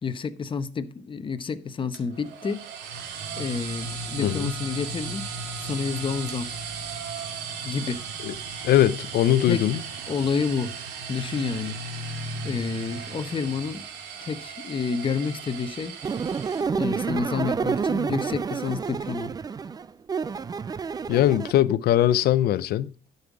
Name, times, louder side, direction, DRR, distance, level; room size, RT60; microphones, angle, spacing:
voice 1, 0.0-2.7 3.4-6.5 7.6-8.0 9.5-9.6 10.1-10.7 11.1-11.8 12.4-13.9 14.2-16.0 16.8-19.3, left 5 dB, 30° left, 1.0 m, -29 dB
sound 1, 1.9-16.6, right 4 dB, 90° right, 2.2 m, -36 dB
voice 2, 8.6-9.8 21.1-23.1, left 12 dB, 70° left, 0.7 m, -21 dB
sound 2, 16.0-21.5, right 5 dB, 25° right, 0.4 m, -29 dB
12.0 x 5.6 x 4.8 m
cardioid pair, 110°, 17 cm